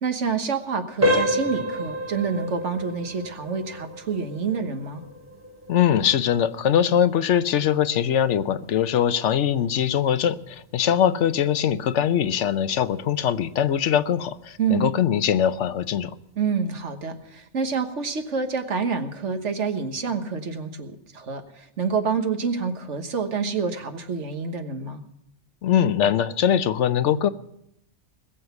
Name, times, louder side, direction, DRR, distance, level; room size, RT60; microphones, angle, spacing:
voice 1, 0.0-5.0 14.6-14.9 16.4-21.4 21.8-25.0, right 5 dB, 90° right, 7 dB, 1.6 m, -27 dB
sound 1, 1.0-11.7 12.0-12.3 12.9-13.0 13.5-13.6, equal, 15° right, 2.9 m, -31 dB
voice 2, 5.7-16.1 25.6-27.3, left 9 dB, 90° left, 13 dB, 1.0 m, -22 dB
20.0 x 7.9 x 7.0 m, 0.76 s
omnidirectional pair, 1.2 m